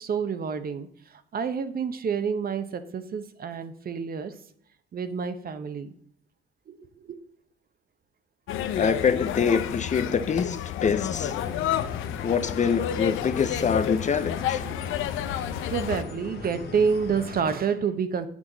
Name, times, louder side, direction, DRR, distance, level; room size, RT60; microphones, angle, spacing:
voice 1, 0.0-4.3 4.9-5.9 6.7-7.2 14.6-15.0 15.7-18.3, right 6 dB, 50° right, 0.9 m, -29 dB
sound 1, 8.5-16.0, left 10 dB, 90° left, 0.6 m, -30 dB
voice 2, 8.8-11.3 12.2-14.6, left 6 dB, 35° left, 0.6 m, -25 dB
sound 2, 10.9-17.4, left 4 dB, 55° left, 1.4 m, -40 dB
8.6 x 6.3 x 4.0 m
cardioid pair, 90°, 20 cm